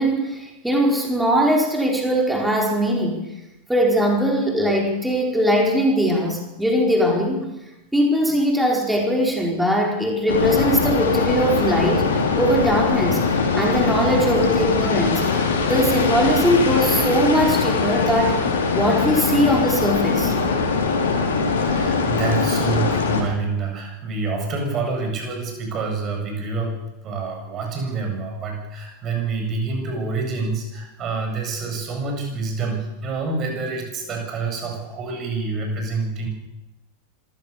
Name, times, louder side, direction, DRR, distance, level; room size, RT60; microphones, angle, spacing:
voice 1, 0.0-3.2 3.7-7.5 7.9-13.2 13.5-15.2 15.7-18.4 18.7-20.3, equal, 5° right, 0 dB, 4.9 m, -20 dB
more heavy surf, 10.3-23.2, left 4 dB, 65° left, 4.6 m, -21 dB
voice 2, 21.6-26.8 27.0-36.3, right 3 dB, 30° right, 2 dB, 7.8 m, -27 dB
26.0 x 16.0 x 7.0 m, 0.98 s
figure-of-eight pair, 90°, 0 cm